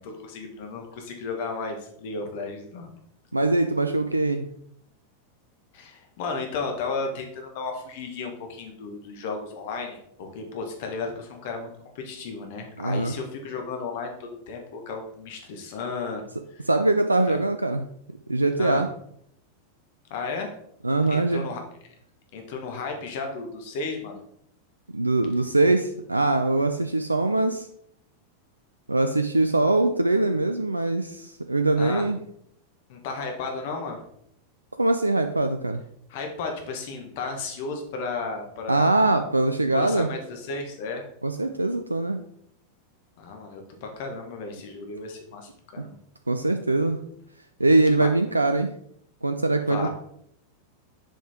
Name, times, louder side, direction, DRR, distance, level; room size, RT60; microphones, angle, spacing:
voice 1, 0.0-2.9 5.7-11.7 11.9-16.6 17.3-17.4 18.6-18.8 20.1-20.5 21.1-21.6 22.3-24.2 31.8-32.1 32.9-34.0 36.1-39.3 39.7-41.0 43.2-45.9 48.0-48.1 49.7-49.9, left 4 dB, 50° left, 4 dB, 1.3 m, -34 dB
voice 2, 3.3-4.5 12.8-13.1 16.7-17.8 18.3-18.9 20.8-21.5 24.9-27.7 28.9-32.2 34.8-35.8 38.7-40.1 41.2-42.2 45.8-45.9 46.3-47.0 47.6-48.8 49.2-49.9, right 2 dB, 85° right, 7 dB, 0.3 m, -22 dB
7.6 x 5.1 x 3.6 m, 0.69 s
figure-of-eight pair, 90°, 0 cm